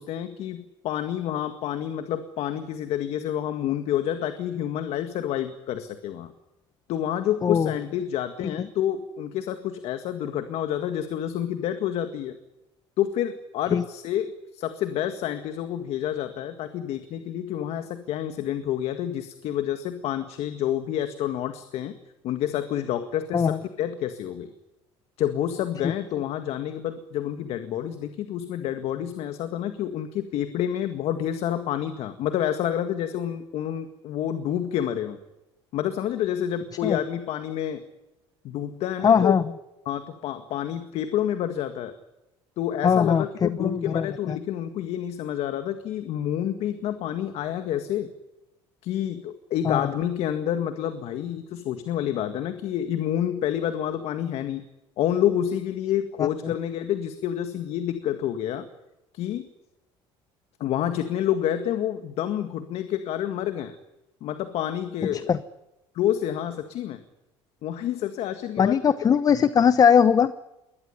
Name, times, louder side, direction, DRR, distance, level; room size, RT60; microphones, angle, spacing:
voice 1, 0.0-6.3 6.9-12.4 13.0-21.9 22.2-24.5 25.2-35.2 35.7-37.8 38.4-39.4 39.9-41.9 42.6-48.1 48.8-54.7 55.0-58.7 59.1-59.5 60.6-63.8 64.2-65.3 66.0-67.0 67.6-68.8, left 10 dB, 65° left, 9 dB, 1.9 m, -28 dB
voice 2, 7.4-7.7 8.6-8.7 13.7-13.8 23.3-23.6 36.8-37.0 39.0-39.4 42.8-44.4 49.6-49.9 56.2-56.5 65.1-65.4 68.6-70.3, left 7 dB, 30° left, 14 dB, 0.9 m, -21 dB
22.0 x 19.5 x 9.8 m, 0.94 s
cardioid pair, 110°, 11 cm